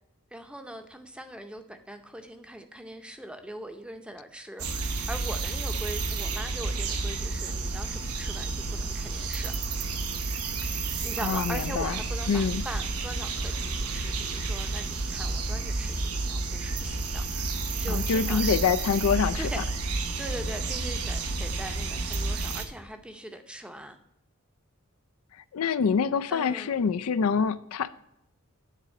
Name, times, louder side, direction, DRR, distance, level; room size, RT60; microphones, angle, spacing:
voice 1, 0.3-9.6 10.7-18.6 19.4-24.0 26.3-26.7, right 1 dB, 5° right, 0.6 m, -41 dB
sound 1, 4.6-22.7, right 3 dB, 90° right, 0.9 m, -31 dB
voice 2, 11.2-12.0 12.3-12.6 17.9-19.6 25.5-27.9, left 6 dB, 75° left, 0.4 m, -26 dB
9.8 x 4.1 x 6.4 m
head